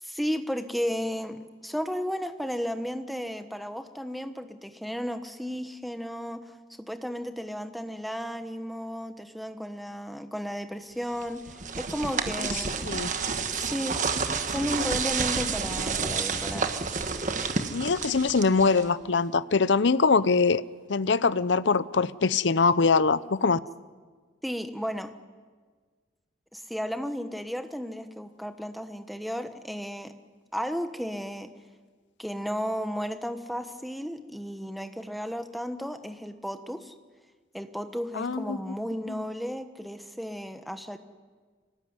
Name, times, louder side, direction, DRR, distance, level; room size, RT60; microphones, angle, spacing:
voice 1, 0.0-6.5 6.8-13.0 13.5-14.0 14.4-16.7 24.4-25.1 26.5-30.1 30.5-31.5 32.2-36.9 37.5-41.0, equal, ahead, 1.1 m, -34 dB
sound 1, 11.2-19.0, right 5 dB, 40° right, 1.5 m, -30 dB
voice 2, 17.7-20.6 20.9-23.6 38.2-38.6 39.1-39.2, left 4 dB, 70° left, 0.6 m, -23 dB
25.0 x 19.0 x 9.6 m
head